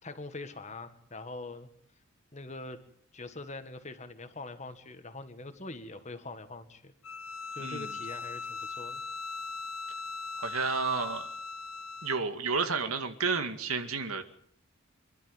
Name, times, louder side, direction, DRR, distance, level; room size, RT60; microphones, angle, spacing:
voice 1, 0.0-1.7 2.3-2.8 3.1-6.9 7.6-9.0, left 3 dB, 30° left, 9 dB, 1.8 m, -43 dB
Bowed string instrument, 7.0-12.3, left 4 dB, 75° left, 1.1 m, -39 dB
voice 2, 10.4-11.3 12.0-14.2, right 4 dB, 85° right, 7 dB, 2.1 m, -31 dB
25.5 x 12.0 x 9.0 m, 0.65 s
head